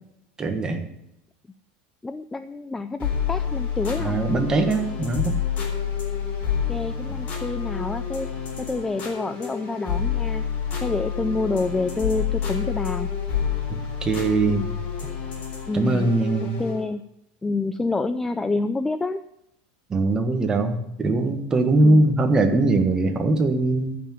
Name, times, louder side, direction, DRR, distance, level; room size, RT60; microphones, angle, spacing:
voice 1, 0.4-0.8 4.0-5.4 14.0-14.6 15.7-16.6 19.9-24.0, right 2 dB, 15° right, 5 dB, 1.4 m, -21 dB
voice 2, 2.0-4.2 6.7-8.3 8.6-10.4 10.8-13.1 14.4-14.7 15.7-16.1 16.4-17.0 17.4-19.2 21.8-22.0, left 3 dB, 5° left, 11 dB, 0.4 m, -28 dB
sound 1, 3.0-16.8, left 7 dB, 30° left, 3.8 m, -28 dB
14.5 x 6.0 x 7.2 m, 0.84 s
supercardioid pair, 165°, 5 cm